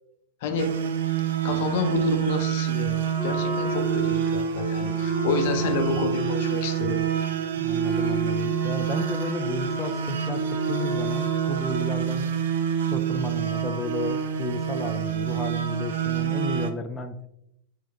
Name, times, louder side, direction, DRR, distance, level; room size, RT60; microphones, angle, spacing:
voice 1, 0.4-0.7 1.4-7.0, left 4 dB, 65° left, 6 dB, 0.7 m, -29 dB
sound 1, 0.6-16.7, right 8 dB, 80° right, 0.4 m, -27 dB
Wind instrument woodwind instrument, 3.1-12.0, equal, 25° right, 1.3 m, -35 dB
voice 2, 7.6-12.3 12.9-17.3, left 2 dB, 15° left, 5 dB, 0.3 m, -33 dB
4.8 x 3.6 x 2.3 m, 0.79 s
hypercardioid pair, 110°, 0 cm